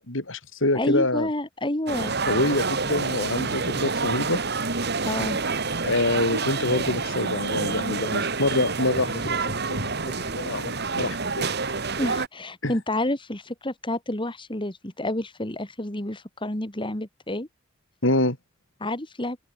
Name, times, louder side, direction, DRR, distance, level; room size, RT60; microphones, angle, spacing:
voice 1, 0.0-1.3 2.3-4.4 5.8-11.5 12.6-12.7 18.0-18.4, left 2 dB, 75° left, 4.9 m, -26 dB
voice 2, 0.7-2.1 5.0-5.4 12.0-17.5 18.8-19.4, left 1 dB, 25° left, 2.7 m, -29 dB
sound 1, 1.9-12.3, right 4 dB, 55° right, 2.9 m, -28 dB
open air
head